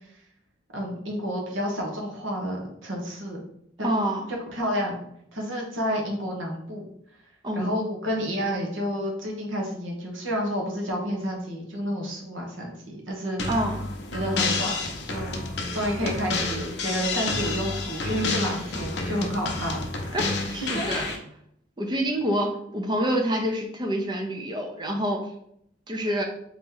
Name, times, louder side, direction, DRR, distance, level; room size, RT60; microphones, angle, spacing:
voice 1, 0.7-3.4 4.5-5.0 5.3-6.8 7.5-13.4 14.1-15.4 15.7-19.9 20.7-20.9, equal, 75° right, -1 dB, 1.2 m, -30 dB
voice 2, 3.8-4.2 7.4-7.7 13.5-13.8 20.1-21.1 21.8-25.2 25.9-26.2, equal, 20° right, 2 dB, 0.5 m, -27 dB
sound 1, 13.4-21.2, left 3 dB, 60° left, 0.6 m, -29 dB
4.0 x 2.9 x 3.8 m, 0.72 s
head